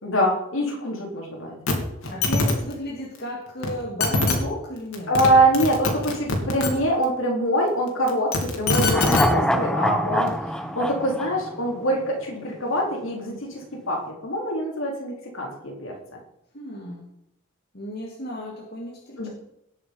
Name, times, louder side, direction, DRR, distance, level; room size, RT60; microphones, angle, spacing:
voice 1, 0.0-1.6 5.1-15.9 19.2-19.3, right 1 dB, 70° left, -1 dB, 3.9 m, -24 dB
sound 1, 1.7-1.8 2.0-2.5 3.6-3.7 4.0-4.4 4.9-5.3 5.5-6.7 8.1-9.3 10.3-10.4, left 3 dB, 90° left, 2.8 m, -22 dB
voice 2, 2.1-5.1 16.5-17.1 17.7-19.3, left 1 dB, 50° left, -2 dB, 2.2 m, -33 dB
sound 2, 8.8-12.2 12.5-12.6, equal, 5° left, 1.0 m, -25 dB
19.0 x 6.7 x 5.4 m, 0.80 s
head